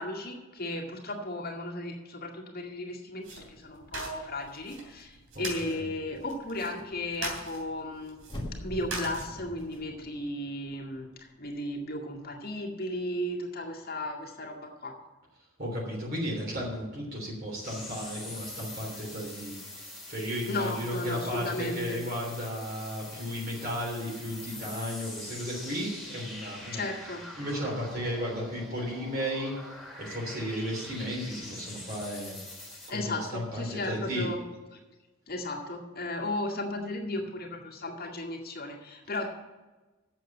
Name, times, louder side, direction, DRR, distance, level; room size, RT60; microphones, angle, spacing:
voice 1, 0.0-8.2 8.6-14.9 20.4-22.0 26.7-27.2 32.9-34.4 35.3-39.3, left 1 dB, 45° left, 0 dB, 2.1 m, -35 dB
sound 1, 3.2-9.8, right 2 dB, 85° right, 3.1 m, -42 dB
voice 2, 5.3-5.8 15.6-19.5 20.1-26.8 27.4-29.5 30.0-32.3 32.9-34.3, equal, 45° right, -3 dB, 3.3 m, -34 dB
sound 2, 8.2-11.2 11.5-11.6, left 1 dB, 20° left, 1.9 m, -43 dB
sound 3, 17.6-32.9, left 1 dB, ahead, 2.6 m, -44 dB
8.3 x 7.5 x 8.7 m, 1.2 s
head